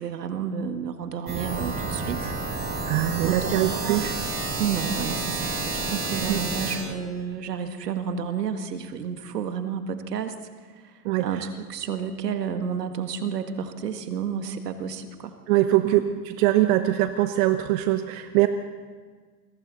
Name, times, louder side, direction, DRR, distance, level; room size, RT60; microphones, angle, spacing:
voice 1, 0.0-2.3 3.2-4.1 4.6-10.4 10.8-15.3 15.8-16.0, right 7 dB, 75° right, 8 dB, 1.8 m, -31 dB
sound 1, 1.3-6.8, right 3 dB, 20° right, 6.1 m, -30 dB
voice 2, 2.9-4.1 6.3-6.4 11.0-11.3 15.5-16.0 16.3-18.5, right 15 dB, 55° right, 9 dB, 1.1 m, -22 dB
29.0 x 21.5 x 4.2 m, 1.5 s
hypercardioid pair, 85°, 48 cm